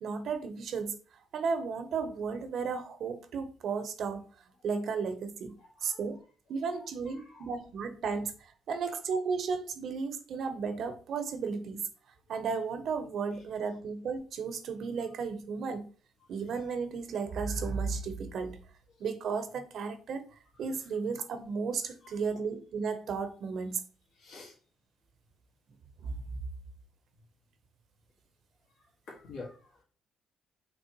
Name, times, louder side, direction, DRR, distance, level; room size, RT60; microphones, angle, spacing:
voice 1, 0.0-1.0 1.3-4.3 4.6-6.2 6.5-8.3 8.7-11.8 12.3-15.9 16.3-18.6 19.0-20.2 20.6-23.8 26.0-26.1, right 5 dB, 65° right, 0.7 m, -34 dB
voice 2, 5.6-6.0 7.1-7.5 8.8-9.0 22.0-22.1 24.1-24.5 29.1-29.8, left 3 dB, 85° left, 1.6 m, -48 dB
5.5 x 3.2 x 2.9 m
cardioid pair, 90°, 0 cm